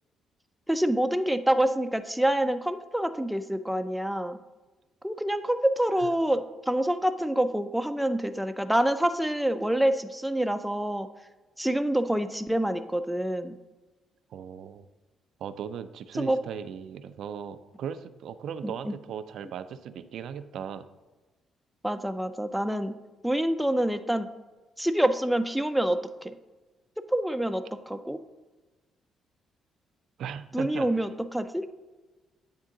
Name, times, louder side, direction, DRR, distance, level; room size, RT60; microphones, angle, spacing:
voice 1, 0.7-4.4 5.0-11.1 11.6-13.6 16.2-16.4 18.6-18.9 21.8-22.9 23.2-24.3 24.8-26.3 27.1-28.2 30.5-31.7, right 1 dB, 5° right, 9 dB, 0.4 m, -26 dB
voice 2, 14.3-14.9 15.4-20.9 30.2-31.1, right 8 dB, 75° right, 11 dB, 0.4 m, -38 dB
8.8 x 3.6 x 3.8 m, 1.2 s
cardioid pair, 90°, 0 cm